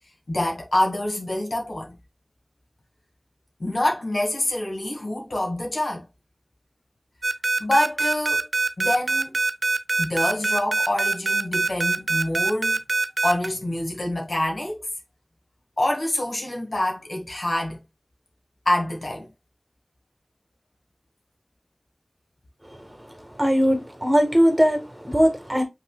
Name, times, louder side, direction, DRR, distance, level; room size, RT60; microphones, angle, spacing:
voice 1, 0.3-2.0 3.6-6.1 7.6-8.5 8.8-9.4 10.0-12.8 13.2-14.8 15.8-17.8 18.7-19.3, left 1 dB, 75° left, 1.8 m, -26 dB
sound 1, 7.2-13.5, right 3 dB, 75° right, 0.6 m, -23 dB
voice 2, 23.4-25.6, equal, 15° right, 1.6 m, -20 dB
5.7 x 4.0 x 2.3 m
wide cardioid pair, 40°, 0 cm